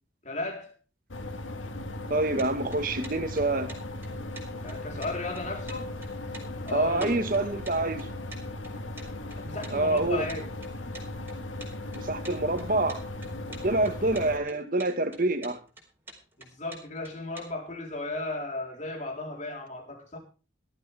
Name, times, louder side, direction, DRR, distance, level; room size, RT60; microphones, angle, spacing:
voice 1, 0.2-0.7 4.6-5.9 6.7-7.1 9.4-10.5 16.4-20.2, left 2 dB, 40° left, 4.0 m, -35 dB
sound 1, 1.1-14.4, left 2 dB, 80° left, 1.6 m, -37 dB
voice 2, 2.1-3.7 6.7-8.1 9.7-10.3 11.9-13.0 13.5-15.6, right 2 dB, 45° right, 1.6 m, -27 dB
sound 2, 2.4-17.5, right 2 dB, 10° right, 4.3 m, -46 dB
18.0 x 12.5 x 3.5 m
head